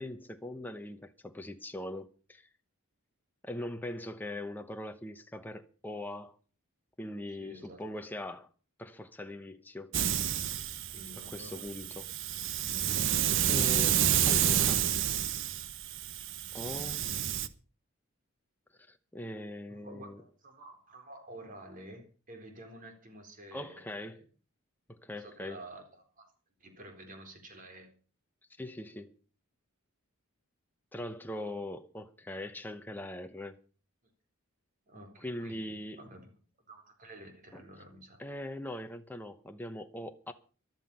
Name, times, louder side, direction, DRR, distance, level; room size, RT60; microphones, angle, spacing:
voice 1, 0.0-2.5 3.4-6.4 7.0-8.5 8.8-9.9 11.3-12.1 13.5-14.9 16.5-17.1 18.9-20.2 23.5-24.2 24.9-25.6 28.6-29.1 30.9-33.6 35.2-36.0 37.5-37.6 38.2-40.3, left 1 dB, 10° left, 0.9 m, -41 dB
voice 2, 7.3-7.9 10.9-11.9 12.5-12.6 16.6-16.9 19.7-24.2 25.2-26.3 26.6-27.9 34.9-36.3 36.7-38.2, right 1 dB, 40° right, 4.0 m, -50 dB
Hiss, 9.9-17.5, right 10 dB, 60° right, 0.9 m, -29 dB
13.5 x 12.5 x 5.6 m
head